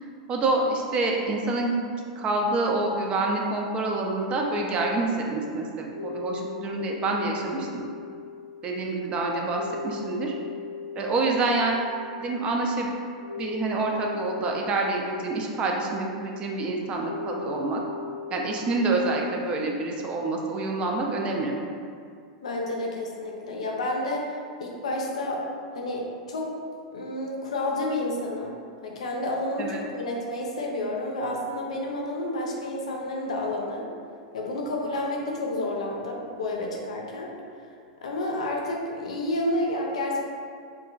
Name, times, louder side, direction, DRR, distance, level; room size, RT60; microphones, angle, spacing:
voice 1, 0.0-1.7 2.2-7.8 8.6-10.3 11.0-11.7 12.2-12.9 13.4-17.8 18.3-21.6 29.6-29.8, right 2 dB, 30° right, 0 dB, 0.4 m, -27 dB
sound 1, 5.9-20.1, left 5 dB, 90° right, 1.2 m, -39 dB
voice 2, 22.4-25.4 25.7-26.5 26.9-28.5 28.8-33.9 34.3-37.3 38.0-40.2, left 1 dB, 80° left, -1 dB, 0.5 m, -30 dB
2.8 x 2.5 x 2.3 m, 2.3 s
hypercardioid pair, 105°, 3 cm